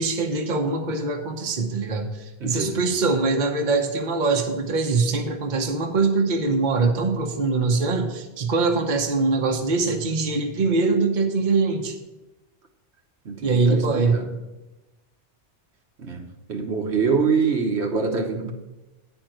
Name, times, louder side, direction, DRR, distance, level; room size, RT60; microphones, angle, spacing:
voice 1, 0.0-12.0 13.4-14.2, right 3 dB, 45° right, 4 dB, 1.0 m, -23 dB
voice 2, 2.4-2.8 13.2-14.2 16.0-16.2 16.5-18.5, right 5 dB, 75° right, 3 dB, 1.3 m, -24 dB
9.6 x 4.5 x 7.7 m, 1.0 s
omnidirectional pair, 1.2 m